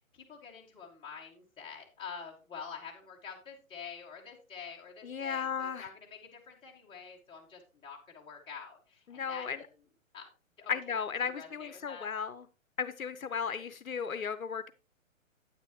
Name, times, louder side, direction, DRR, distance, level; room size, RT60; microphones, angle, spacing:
voice 1, 0.1-9.6 10.1-10.3 10.6-10.7 11.2-12.1, left 6 dB, 10° left, -3 dB, 2.2 m, -47 dB
voice 2, 5.0-5.9 9.1-9.6 10.7-12.5 12.8-14.7, left 6 dB, 80° left, 13 dB, 0.8 m, -35 dB
9.5 x 9.3 x 3.1 m, 0.32 s
figure-of-eight pair, 130°, 41 cm